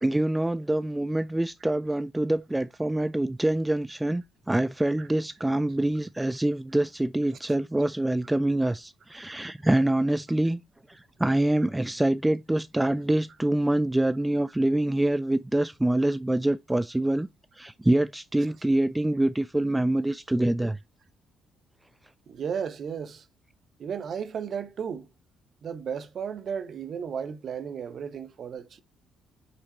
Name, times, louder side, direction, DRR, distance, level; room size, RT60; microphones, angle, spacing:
voice 1, 0.0-10.6 10.9-17.3 17.6-20.8, right 1 dB, 10° right, 0.3 m, -25 dB
voice 2, 22.3-23.2 23.8-25.1 25.6-28.8, right 7 dB, 45° right, 0.9 m, -34 dB
6.2 x 5.7 x 2.9 m
figure-of-eight pair, 45°, 0 cm